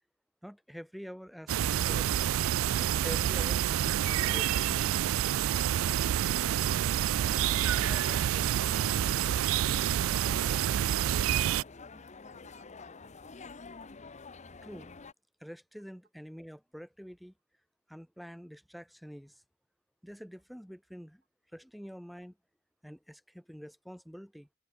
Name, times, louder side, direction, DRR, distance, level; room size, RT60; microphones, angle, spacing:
voice 1, 0.4-2.3 2.8-5.1 14.6-14.9 15.4-17.3 17.9-19.4 20.0-21.2 21.5-22.4 22.8-24.5, equal, ahead, 1.2 m, -46 dB
sound 1, 1.5-11.6, right 10 dB, 75° right, 0.3 m, -28 dB
sound 2, 7.2-15.1, left 4 dB, 35° left, 0.9 m, -48 dB
voice 2, 9.9-13.7 24.2-24.3, right 3 dB, 50° right, 7.7 m, -66 dB
head